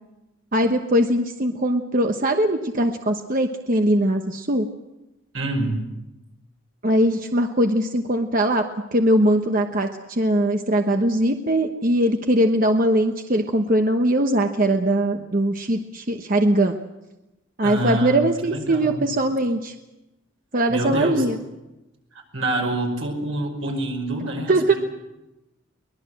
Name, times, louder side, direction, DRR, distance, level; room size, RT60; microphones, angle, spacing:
voice 1, 0.5-4.7 6.8-8.7 8.9-16.8 17.6-19.7 20.5-21.4 24.5-24.8, right 1 dB, 40° right, 5 dB, 1.1 m, -21 dB
voice 2, 5.3-5.8 17.6-19.1 20.7-21.3 22.3-24.8, right 1 dB, 85° right, 2 dB, 5.5 m, -26 dB
23.0 x 20.0 x 7.8 m, 0.99 s
head